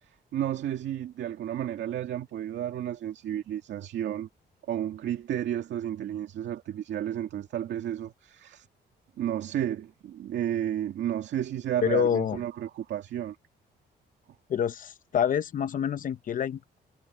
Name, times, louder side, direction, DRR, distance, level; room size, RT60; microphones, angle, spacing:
voice 1, 0.0-4.3 4.7-8.7 9.2-13.4, right 11 dB, 80° right, 2.2 m, -32 dB
voice 2, 11.8-12.4 14.5-16.8, left 8 dB, 50° left, 0.9 m, -27 dB
cardioid pair, 160°, 18 cm